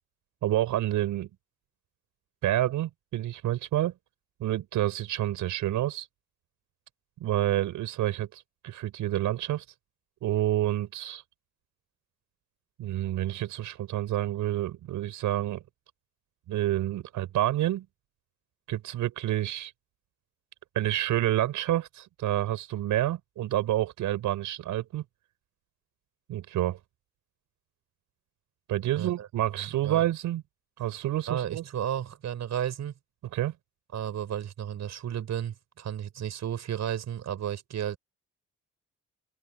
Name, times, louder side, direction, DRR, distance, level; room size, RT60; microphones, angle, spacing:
voice 1, 0.4-1.3 2.4-3.9 4.4-6.1 7.2-9.6 10.2-11.2 12.8-15.6 16.5-17.9 18.7-19.7 20.7-25.0 26.3-26.8 28.7-30.4 30.8-31.6 33.3-33.5, right 13 dB, 85° right, 5.9 m, -28 dB
voice 2, 28.9-29.3 29.6-30.0 31.3-32.9 33.9-38.0, right 9 dB, 65° right, 6.8 m, -33 dB
cardioid pair, 90°, 30 cm